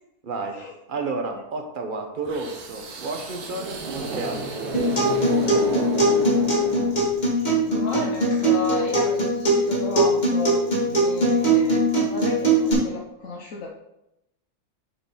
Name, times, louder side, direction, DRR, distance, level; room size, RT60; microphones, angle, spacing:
voice 1, 0.2-0.6 0.9-4.5, right 3 dB, 40° right, 4 dB, 0.9 m, -31 dB
sound 1, 2.3-7.4, right 3 dB, 80° right, 1.5 m, -31 dB
Acoustic guitar, 4.7-12.7, right 1 dB, 30° left, 2.0 m, -21 dB
voice 2, 7.7-13.7, left 3 dB, 60° left, -2 dB, 1.1 m, -33 dB
9.4 x 4.0 x 3.9 m, 0.88 s
omnidirectional pair, 1.6 m